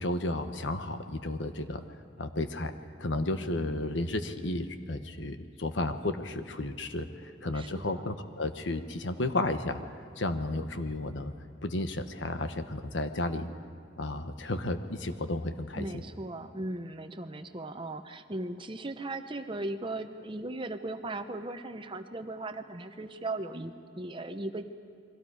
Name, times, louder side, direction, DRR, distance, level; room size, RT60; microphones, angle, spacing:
voice 1, 0.0-1.8 2.2-2.7 3.0-11.3 11.6-13.5 14.0-16.0, left 2 dB, 75° left, 8 dB, 1.2 m, -33 dB
voice 2, 7.5-8.1 15.7-24.7, right 2 dB, 25° right, 8 dB, 1.0 m, -38 dB
29.5 x 22.5 x 5.0 m, 2.5 s
head